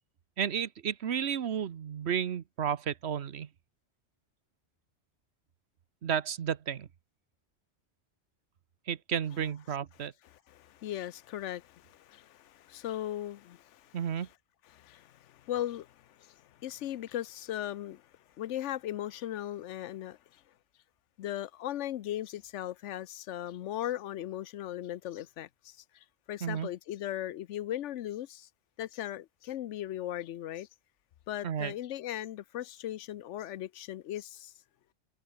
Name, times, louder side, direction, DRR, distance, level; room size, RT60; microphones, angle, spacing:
voice 1, 0.4-3.5 6.0-6.9 8.9-10.1 13.9-14.3 26.4-26.7 31.4-31.7, right 8 dB, 65° right, 1.1 m, -32 dB
voice 2, 9.3-14.3 14.6-18.1 18.4-20.4 21.2-28.5 28.8-30.7 31.3-34.5, left 12 dB, 85° left, 1.0 m, -38 dB
omnidirectional pair, 1.2 m